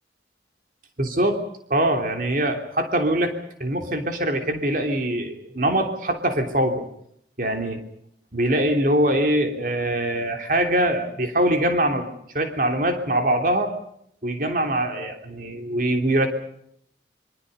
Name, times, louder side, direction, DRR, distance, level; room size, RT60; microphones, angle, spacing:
voice 1, 1.0-1.4 1.7-3.3 3.6-6.8 7.4-7.8 8.3-13.8 14.2-16.3, right 1 dB, 50° right, 5 dB, 3.1 m, -23 dB
26.5 x 25.0 x 5.4 m, 0.71 s
head